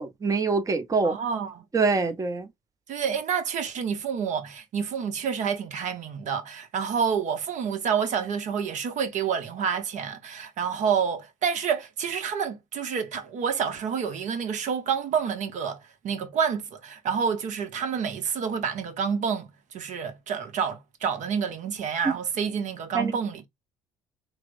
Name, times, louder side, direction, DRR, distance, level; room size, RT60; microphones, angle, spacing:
voice 1, 0.0-1.2 1.7-2.5 22.0-22.1 22.9-23.1, right 4 dB, 20° right, 0.7 m, -24 dB
voice 2, 1.0-1.6 2.9-23.5, right 7 dB, 50° right, 0.9 m, -28 dB
4.5 x 2.1 x 2.5 m
hypercardioid pair, 60°, 16 cm